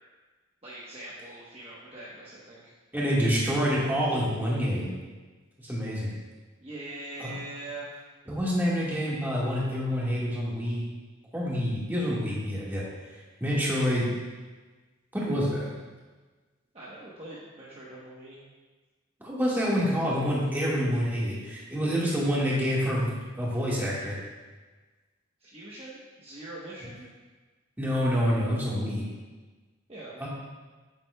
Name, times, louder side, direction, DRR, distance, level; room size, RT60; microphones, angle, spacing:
voice 1, 0.6-2.7 6.6-8.0 16.7-18.4 20.3-21.5 21.8-22.4 25.4-27.1 29.9-30.3, right 2 dB, 30° right, -7 dB, 1.1 m, -43 dB
voice 2, 2.9-4.9 5.6-6.1 7.2-7.3 8.3-10.8 11.3-12.8 13.4-14.1 15.1-15.7 19.2-23.1 23.3-24.2 27.8-29.0 30.2-30.3, equal, 10° right, -7 dB, 1.8 m, -27 dB
9.3 x 9.2 x 2.3 m, 1.3 s
head